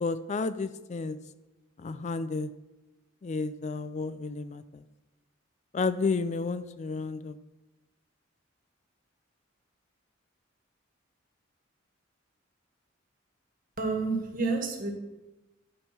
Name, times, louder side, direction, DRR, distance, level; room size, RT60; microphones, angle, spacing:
voice 1, 0.0-1.2 1.8-2.5 3.2-4.8 5.7-7.3, left 4 dB, 35° left, 13 dB, 0.4 m, -31 dB
voice 2, 13.8-14.9, right 3 dB, 45° right, 3 dB, 1.6 m, -29 dB
12.0 x 5.4 x 5.9 m, 1.0 s
head